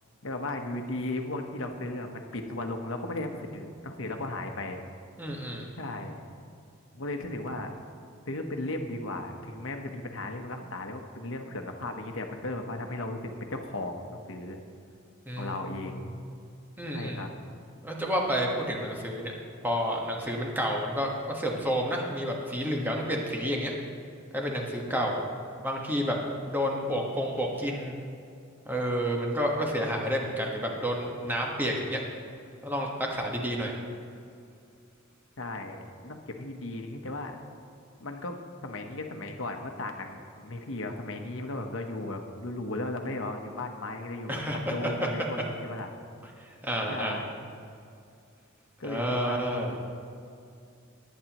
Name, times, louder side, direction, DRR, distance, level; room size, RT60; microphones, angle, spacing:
voice 1, 0.2-4.8 5.8-6.1 6.9-7.7 8.3-14.6 15.4-16.0 16.9-17.3 25.0-25.2 35.4-37.4 38.0-45.9 46.9-47.3 48.8-49.8, left 2 dB, 70° left, 4 dB, 1.1 m, -36 dB
voice 2, 5.2-5.7 15.3-16.0 16.8-17.2 17.8-23.7 24.3-25.2 25.6-26.2 26.5-27.9 28.6-32.0 32.6-33.8 44.3-45.1 46.6-47.2 48.8-49.8, equal, 10° right, -1 dB, 1.4 m, -30 dB
18.5 x 9.4 x 3.0 m, 2.5 s
head